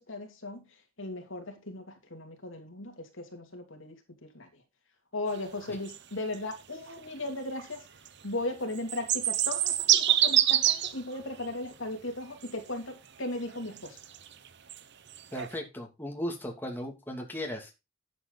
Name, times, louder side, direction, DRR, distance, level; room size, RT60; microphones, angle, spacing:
voice 1, 0.1-0.6 1.0-3.9 4.3-4.5 5.1-7.8 8.2-14.0, left 2 dB, 70° left, 2.9 m, -37 dB
sound 1, 5.6-6.0 6.3-6.5 6.9-7.0 7.6-7.7 8.0-8.1 8.7-11.0 11.4-11.5 12.4-12.5 13.5-14.8 15.1-15.5, right 11 dB, 55° right, 1.0 m, -26 dB
voice 2, 15.3-17.8, left 1 dB, 10° left, 2.6 m, -36 dB
11.5 x 8.3 x 4.1 m
head